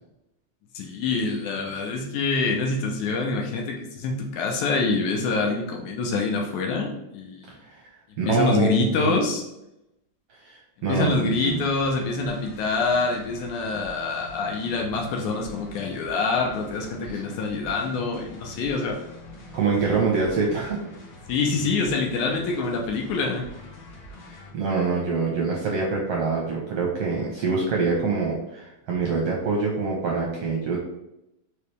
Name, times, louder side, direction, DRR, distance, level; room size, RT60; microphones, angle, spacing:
voice 1, 0.7-7.5 8.3-9.4 10.9-19.0 21.3-23.5, left 3 dB, 75° left, 1 dB, 2.1 m, -26 dB
voice 2, 7.6-7.9 8.2-9.2 10.4-11.6 17.1-17.2 19.5-20.8 24.2-30.8, right 4 dB, 65° right, -2 dB, 1.6 m, -25 dB
sound 1, 11.4-24.5, left 1 dB, 50° left, 1.5 m, -45 dB
5.7 x 4.9 x 3.4 m, 0.88 s
omnidirectional pair, 3.8 m